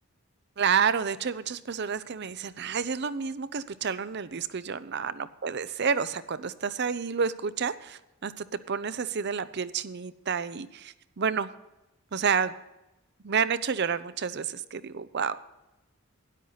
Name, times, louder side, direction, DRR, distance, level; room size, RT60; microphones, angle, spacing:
voice 1, 0.6-11.5 12.1-12.5 13.2-15.4, right 6 dB, 55° right, 15 dB, 0.6 m, -29 dB
12.5 x 11.0 x 4.0 m, 0.97 s
head